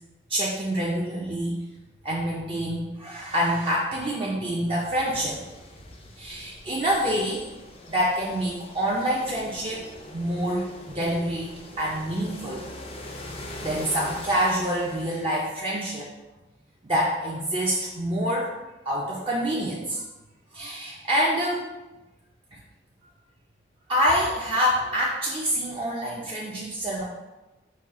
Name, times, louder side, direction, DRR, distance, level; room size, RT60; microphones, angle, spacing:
voice 1, 0.3-1.6 2.0-5.5 6.2-7.4 7.9-11.5 11.8-12.7 13.6-16.1 16.8-18.5 18.9-20.0 20.5-21.6 22.5-22.6 23.9-27.0, equal, 30° right, -5 dB, 0.5 m, -26 dB
sound 1, 4.7-15.6, left 2 dB, 30° left, 0.4 m, -42 dB
5.5 x 2.3 x 3.6 m, 1.1 s
head